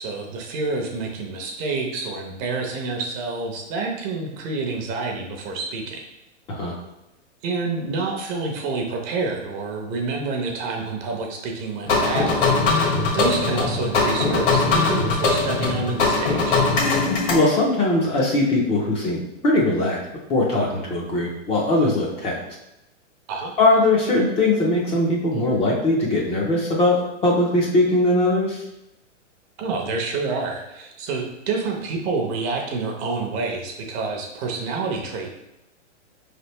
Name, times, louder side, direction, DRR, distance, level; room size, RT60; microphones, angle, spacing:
voice 1, 0.0-6.0 7.4-16.6 23.3-23.5 29.6-35.3, right 3 dB, 30° right, 1 dB, 0.6 m, -28 dB
sound 1, 11.8-17.4, left 3 dB, 60° left, 1.4 m, -21 dB
voice 2, 17.3-20.0 20.3-22.4 23.6-28.6, left 2 dB, 15° left, -2 dB, 0.5 m, -20 dB
4.8 x 3.3 x 2.9 m, 0.92 s
hypercardioid pair, 140°, 37 cm